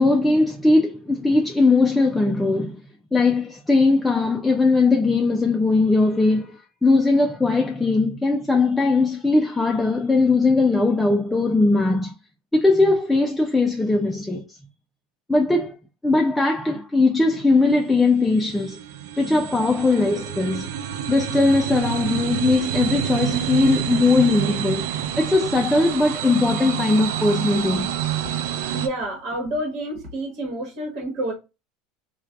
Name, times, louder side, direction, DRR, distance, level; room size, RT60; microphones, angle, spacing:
voice 1, 0.0-2.8 3.1-12.1 12.5-14.6 15.3-15.8 16.0-18.8 19.2-20.7 21.1-24.9 25.2-27.9, left 3 dB, 10° left, 0.4 m, -19 dB
sound 1, 17.3-28.9, right 11 dB, 80° right, 0.4 m, -28 dB
voice 2, 28.7-31.3, right 1 dB, 55° right, 1.2 m, -29 dB
3.2 x 2.2 x 2.3 m
supercardioid pair, 100°, 0 cm